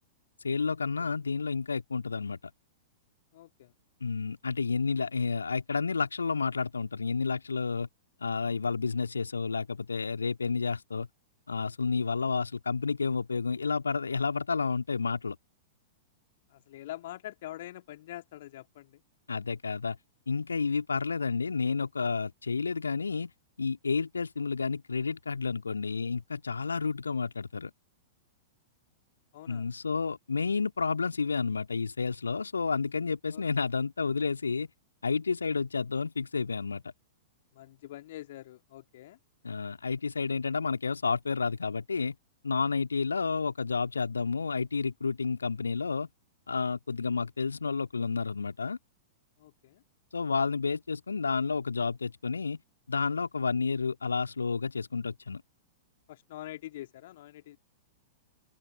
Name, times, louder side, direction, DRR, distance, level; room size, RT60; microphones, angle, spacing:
voice 1, 0.4-2.4 4.0-7.9 8.2-11.1 11.5-15.4 19.3-20.0 20.3-23.3 23.6-27.7 29.5-34.7 35.0-36.8 39.4-42.2 42.4-46.1 46.5-48.8 50.1-52.6 52.9-55.4, left 4 dB, 75° left, 2.2 m, -30 dB
voice 2, 3.3-3.7 16.5-19.0 29.3-29.7 33.3-33.7 37.5-39.2 49.4-49.8 56.1-57.6, left 14 dB, 50° left, 2.1 m, -45 dB
open air
figure-of-eight pair, 100°, 0 cm